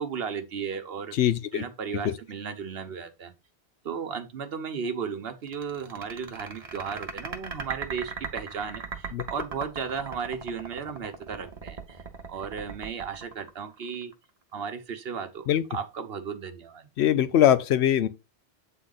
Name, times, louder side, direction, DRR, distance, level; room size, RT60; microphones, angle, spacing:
voice 1, 0.0-1.2 1.5-3.3 3.8-14.1 14.5-16.9, right 6 dB, 70° right, 1.1 m, -35 dB
voice 2, 1.2-1.6 2.0-2.1 9.1-9.2 15.5-15.6 17.0-18.1, left 10 dB, 90° left, 0.9 m, -22 dB
sound 1, 5.5-14.1, right 5 dB, 40° right, 0.9 m, -38 dB
8.1 x 3.8 x 3.9 m
omnidirectional pair, 1.1 m